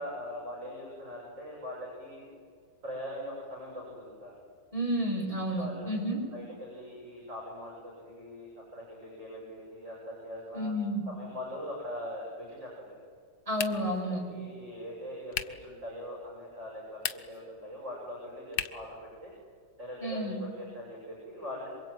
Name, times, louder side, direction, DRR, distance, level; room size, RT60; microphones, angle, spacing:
voice 1, 0.0-2.3 2.8-4.4 5.6-5.9 6.3-10.7 11.1-13.0 14.1-17.0 17.3-19.0 19.2-19.3 19.8-21.7, left 1 dB, 90° right, -3 dB, 7.3 m, -41 dB
voice 2, 4.7-6.2 10.5-11.0 13.5-14.2 20.0-20.4, equal, 15° right, -1 dB, 6.4 m, -31 dB
sound 1, 13.5-14.0 15.3-15.7 16.9-17.5 18.5-18.9, left 9 dB, 85° left, 1.7 m, -35 dB
27.0 x 23.5 x 9.3 m, 2.2 s
omnidirectional pair, 1.9 m